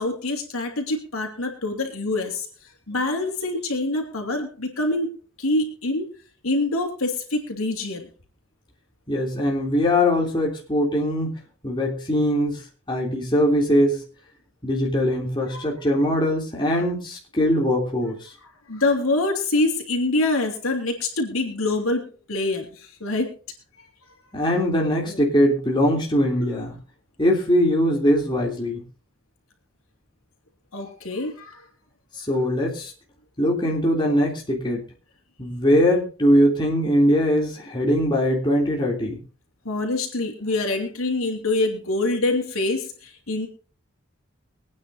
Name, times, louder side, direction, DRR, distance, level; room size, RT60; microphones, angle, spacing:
voice 1, 0.0-2.5 2.9-6.1 6.4-8.1 15.5-15.6 16.7-16.8 18.7-23.3 25.1-25.2 30.7-31.6 39.6-43.5, left 2 dB, 85° left, 2 dB, 3.1 m, -25 dB
voice 2, 9.1-11.3 11.6-12.6 12.9-14.0 14.6-18.3 24.3-26.8 27.2-28.8 32.3-32.9 33.4-34.8 35.4-39.2, equal, 20° left, -2 dB, 3.2 m, -21 dB
23.5 x 9.5 x 2.7 m, 0.38 s
head